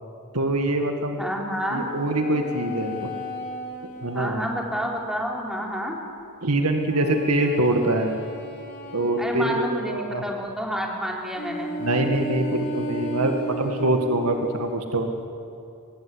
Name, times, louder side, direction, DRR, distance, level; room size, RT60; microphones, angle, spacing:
voice 1, 0.3-1.2 1.7-3.1 4.0-4.4 6.4-8.2 8.9-10.2 11.8-15.1, right 1 dB, 85° right, 4 dB, 1.9 m, -24 dB
voice 2, 1.2-1.8 4.1-6.0 9.2-11.7 12.2-12.3, equal, ahead, -1 dB, 3.6 m, -29 dB
sound 1, 1.7-5.2 6.8-9.8 11.3-14.7, equal, 50° left, 3.8 m, -35 dB
24.0 x 19.0 x 9.8 m, 2.7 s
head